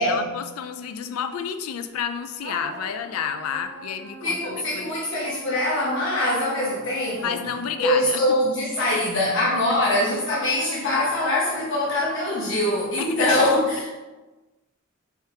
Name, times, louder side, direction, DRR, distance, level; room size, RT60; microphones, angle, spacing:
voice 1, 0.0-4.9 7.2-8.2 13.0-13.3, left 7 dB, 85° left, 8 dB, 0.3 m, -30 dB
sound 1, 2.4-8.6 9.2-13.1, right 1 dB, 55° right, 0.6 m, -43 dB
voice 2, 4.2-7.5 7.8-13.9, left 1 dB, 60° left, -7 dB, 0.9 m, -23 dB
4.5 x 3.5 x 2.8 m, 1.2 s
head